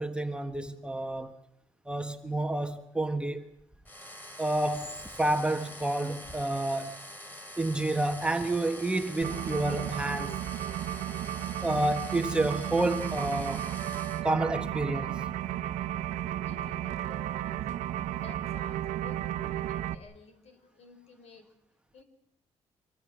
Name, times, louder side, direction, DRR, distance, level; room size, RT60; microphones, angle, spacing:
voice 1, 0.0-1.3 1.8-3.5 4.4-7.0 7.6-10.4 11.6-13.6 14.2-15.2, right 2 dB, 10° right, 1.5 m, -29 dB
Electric drill sound, 3.8-14.2, left 1 dB, 15° left, 4.1 m, -45 dB
sound 1, 9.2-19.9, right 12 dB, 85° right, 1.0 m, -34 dB
voice 2, 16.4-17.7 18.1-21.5 21.9-22.0, left 4 dB, 65° left, 4.9 m, -53 dB
25.0 x 19.5 x 7.8 m
cardioid pair, 110°, 12 cm